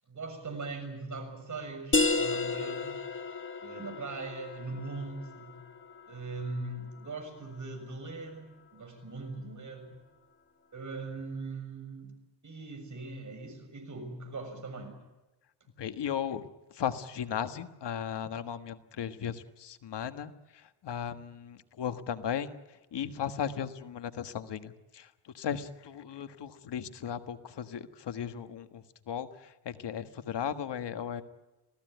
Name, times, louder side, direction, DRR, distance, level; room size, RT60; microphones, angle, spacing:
voice 1, 0.1-3.0 3.6-5.6 6.1-9.9 10.7-12.1 12.4-15.0, right 3 dB, 45° right, 6 dB, 6.8 m, -40 dB
sound 1, 1.9-7.3, left 3 dB, 30° left, 2.2 m, -33 dB
voice 2, 15.8-16.4 16.8-20.3 20.8-22.6 22.9-25.0 25.3-28.8 29.1-29.3 29.6-31.2, left 8 dB, 85° left, 10 dB, 1.6 m, -36 dB
27.0 x 17.5 x 9.3 m, 1.1 s
wide cardioid pair, 120°, 41 cm